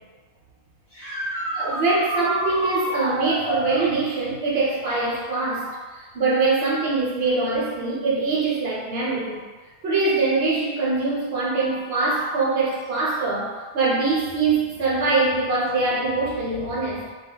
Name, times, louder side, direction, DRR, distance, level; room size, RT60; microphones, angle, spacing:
sound 1, 0.9-3.9 7.2-7.3 9.3-9.4 15.7-15.8, right 1 dB, 15° left, 0.9 m, -28 dB
voice 1, 1.5-9.4 9.8-17.0, right 3 dB, 65° right, -4 dB, 0.9 m, -23 dB
2.2 x 2.0 x 3.5 m, 1.4 s
omnidirectional pair, 1.1 m